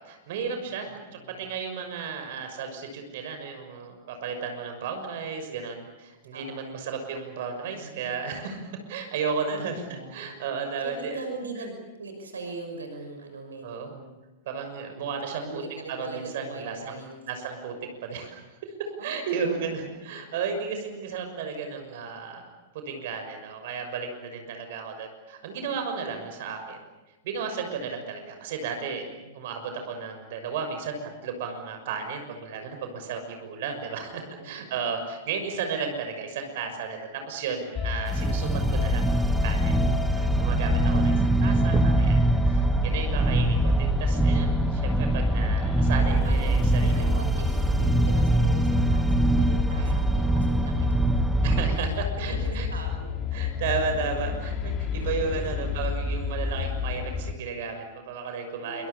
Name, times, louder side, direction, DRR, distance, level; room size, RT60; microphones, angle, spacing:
voice 1, 0.0-11.2 13.6-13.9 14.5-15.6 15.9-17.0 17.3-17.7 18.0-26.8 27.2-29.0 29.3-39.8 40.1-47.2 49.8-50.0 51.4-52.7 53.3-58.9, right 5 dB, 55° right, 6 dB, 6.3 m, -34 dB
voice 2, 0.7-1.5 6.3-6.8 7.6-8.3 9.4-10.4 10.8-14.1 14.9-17.1 19.0-20.0 29.2-29.4 33.9-34.5 46.0-46.4 46.9-51.1 51.7-53.1 53.6-54.1 55.0-55.1 55.3-55.8 58.6-58.9, right 3 dB, 75° right, 5 dB, 6.0 m, -41 dB
sound 1, 37.7-57.3, left 7 dB, 30° left, 2.3 m, -30 dB
sound 2, 38.1-51.8, right 2 dB, 5° right, 1.3 m, -23 dB
sound 3, 41.6-42.3 44.0-44.1 45.9-46.1 46.9-47.0, right 9 dB, 25° right, 0.9 m, -34 dB
28.0 x 26.0 x 7.2 m, 1.1 s
figure-of-eight pair, 100°, 0 cm